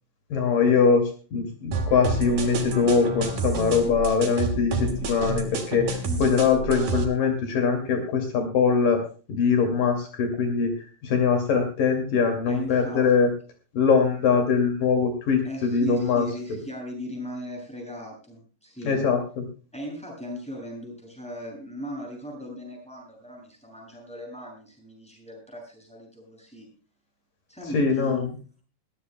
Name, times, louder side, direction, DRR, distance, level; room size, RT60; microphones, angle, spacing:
voice 1, 0.3-9.0 9.3-10.7 11.0-13.3 13.7-16.6 18.8-19.4 27.7-28.4, left 5 dB, 70° left, 4 dB, 4.0 m, -22 dB
sound 1, 1.7-7.0, right 3 dB, 85° right, 4.8 m, -29 dB
voice 2, 6.0-6.4 12.5-13.1 15.4-19.0 19.7-26.7 27.5-28.3, left 1 dB, ahead, 0 dB, 7.0 m, -38 dB
21.5 x 15.5 x 2.2 m, 0.37 s
omnidirectional pair, 4.1 m